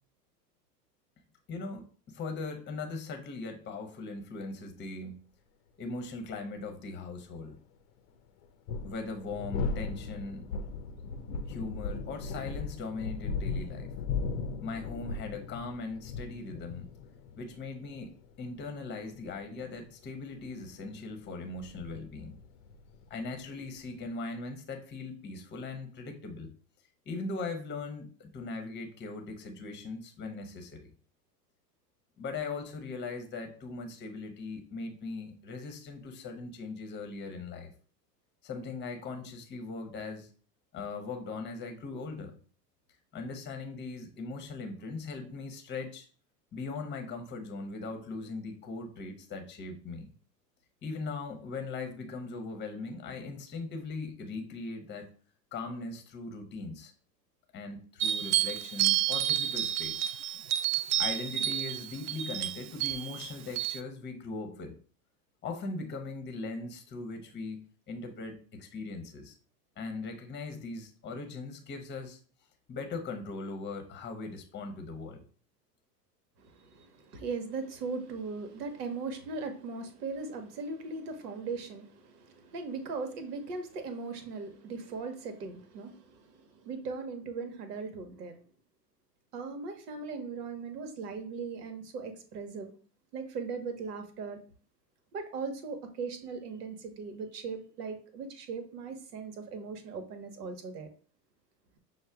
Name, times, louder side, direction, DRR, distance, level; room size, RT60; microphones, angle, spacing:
voice 1, 1.5-5.2 5.8-7.6 8.8-10.5 11.4-13.9 14.6-16.9 17.4-22.4 23.1-26.5 27.1-30.9 32.2-37.7 38.4-40.3 40.7-42.4 43.1-46.1 46.5-50.1 50.8-55.1 55.5-56.9 57.5-60.1 61.0-64.7 65.4-69.3 69.8-72.2 72.7-75.2, left 3 dB, 20° left, 5 dB, 0.9 m, -39 dB
sound 1, 6.3-6.4 8.4-24.1, left 4 dB, 50° left, 0.7 m, -38 dB
sound 2, 58.0-63.8, right 11 dB, 50° right, 0.5 m, -30 dB
voice 2, 76.4-88.4 89.3-92.7 93.1-94.4 95.1-100.9, right 4 dB, 70° right, 7 dB, 1.1 m, -39 dB
6.3 x 2.1 x 3.4 m, 0.42 s
hypercardioid pair, 90°, 49 cm